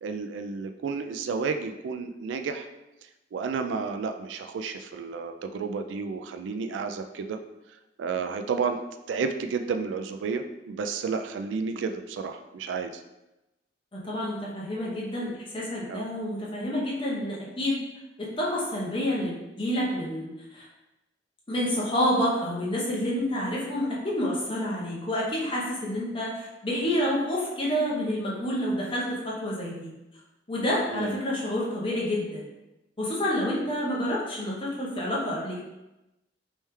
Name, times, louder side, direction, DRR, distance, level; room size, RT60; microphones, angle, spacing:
voice 1, 0.0-2.7 3.3-7.4 8.0-8.8 9.1-12.9 15.9-16.0 30.9-31.2, right 5 dB, 85° right, 7 dB, 0.3 m, -31 dB
voice 2, 13.9-17.8 18.2-20.7 21.5-29.9 30.5-32.4 33.0-35.6, left 1 dB, 30° left, -5 dB, 0.9 m, -28 dB
3.2 x 3.1 x 3.3 m, 0.98 s
head